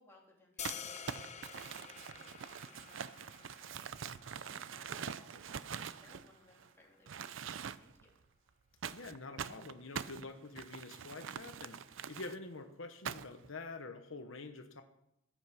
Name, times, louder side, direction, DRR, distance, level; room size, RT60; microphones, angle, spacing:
voice 1, 0.0-2.1 2.6-8.2, left 1 dB, 10° left, -2 dB, 2.9 m, -65 dB
sound 1, 0.6-6.7, left 7 dB, 35° left, 0.9 m, -50 dB
Crumpling crinkling, 0.6-6.7 7.1-8.0 8.8-12.4 13.0-13.5, right 7 dB, 70° right, 0.5 m, -44 dB
voice 2, 8.9-14.8, left 3 dB, 75° left, 7 dB, 1.1 m, -47 dB
14.0 x 9.2 x 5.8 m, 0.81 s
head